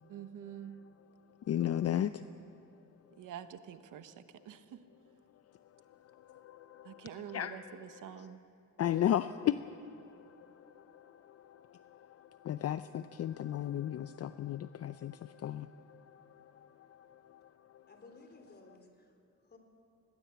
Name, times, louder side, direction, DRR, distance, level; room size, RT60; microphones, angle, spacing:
voice 1, 0.1-0.8 3.2-4.8 6.8-8.4, right 10 dB, 75° right, 1.1 m, -47 dB
voice 2, 1.4-2.2 5.7-8.3 8.8-17.9, left 11 dB, 50° left, 0.6 m, -36 dB
voice 3, 17.9-19.6, left 3 dB, 30° left, 3.8 m, -57 dB
21.0 x 18.5 x 8.2 m
cardioid pair, 100°, 32 cm